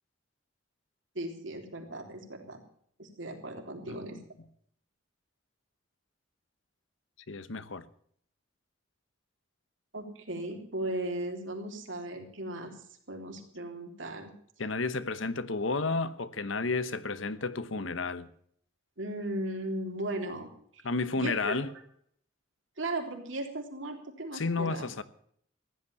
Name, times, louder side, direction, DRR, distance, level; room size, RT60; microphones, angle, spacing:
voice 1, 1.2-2.6 3.0-4.2 9.9-12.7 13.1-14.3 19.0-20.9 21.1-21.7 22.8-24.8, right 1 dB, 70° right, 3.5 m, -37 dB
voice 2, 3.9-4.2 7.3-7.8 14.6-18.3 20.8-21.7 24.3-25.0, left 3 dB, 75° left, 1.0 m, -32 dB
16.0 x 11.0 x 7.0 m
head